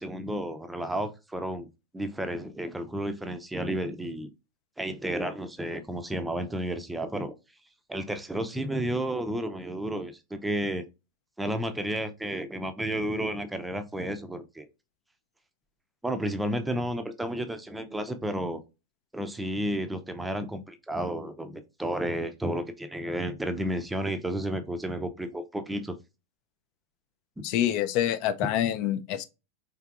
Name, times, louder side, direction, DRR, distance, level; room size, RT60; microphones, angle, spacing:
voice 1, 0.0-1.7 1.9-4.3 4.8-7.3 7.9-10.8 11.4-14.7 16.0-18.6 19.1-26.0, right 1 dB, 5° right, 0.5 m, -32 dB
voice 2, 27.4-29.2, left 11 dB, 45° left, 0.4 m, -26 dB
4.5 x 3.3 x 2.4 m
figure-of-eight pair, 90°, 0 cm